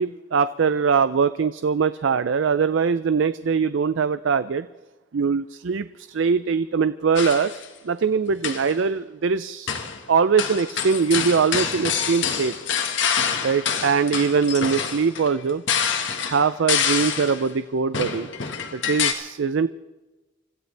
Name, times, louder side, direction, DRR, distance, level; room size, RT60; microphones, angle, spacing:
voice 1, 0.0-4.7 5.1-12.5 13.4-15.6 16.3-18.3 18.7-19.7, right 5 dB, 65° right, 13 dB, 0.4 m, -22 dB
sound 1, 7.2-7.7 8.3-8.8 9.7-10.0 10.4-17.5 17.9-19.1, left 7 dB, 65° left, 1.6 m, -26 dB
25.5 x 15.0 x 3.4 m, 1.2 s
head